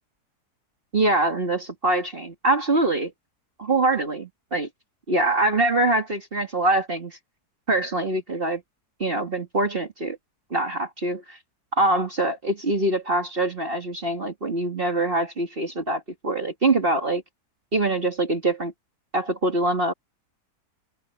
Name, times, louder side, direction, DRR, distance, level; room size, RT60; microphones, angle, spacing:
voice 1, 0.9-3.1 3.6-4.7 5.1-7.2 7.7-8.6 9.0-10.2 10.5-11.4 11.7-17.2 17.7-18.7 19.1-19.9, right 2 dB, 35° right, 2.0 m, -24 dB
omnidirectional pair, 1.7 m